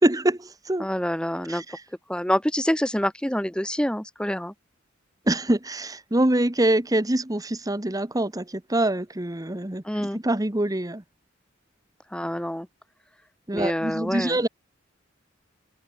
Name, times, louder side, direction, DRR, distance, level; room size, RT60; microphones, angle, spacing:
voice 1, 0.0-0.9 1.5-1.6 5.3-11.0 13.5-14.5, right 1 dB, 20° right, 1.2 m, -24 dB
voice 2, 0.8-1.6 2.1-4.5 9.8-10.2 12.1-12.7 13.5-14.4, equal, 5° left, 1.7 m, -26 dB
head